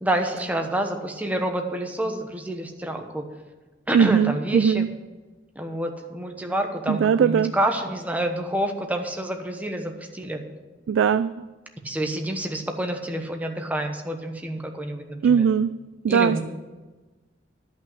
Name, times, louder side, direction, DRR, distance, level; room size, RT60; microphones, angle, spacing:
voice 1, 0.0-3.2 3.9-4.9 5.5-10.4 11.8-15.4 16.1-16.4, right 1 dB, 10° right, 4 dB, 1.0 m, -28 dB
voice 2, 3.9-4.9 6.9-7.5 10.9-11.4 15.2-15.7 16.0-16.4, right 7 dB, 80° right, 13 dB, 0.3 m, -20 dB
10.5 x 5.8 x 8.3 m, 1.2 s
head